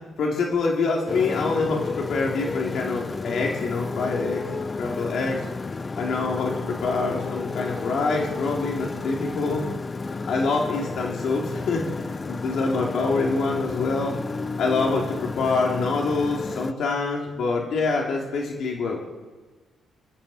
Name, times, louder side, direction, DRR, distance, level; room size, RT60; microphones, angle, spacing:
voice 1, 0.2-4.4 4.8-5.5 6.0-9.7 10.2-14.2 14.6-19.0, left 3 dB, 70° left, -1 dB, 2.8 m, -26 dB
Motorcycle, 1.1-16.7, left 4 dB, 30° left, 0.7 m, -31 dB
25.0 x 13.0 x 4.3 m, 1.3 s
cardioid pair, 90°, 0 cm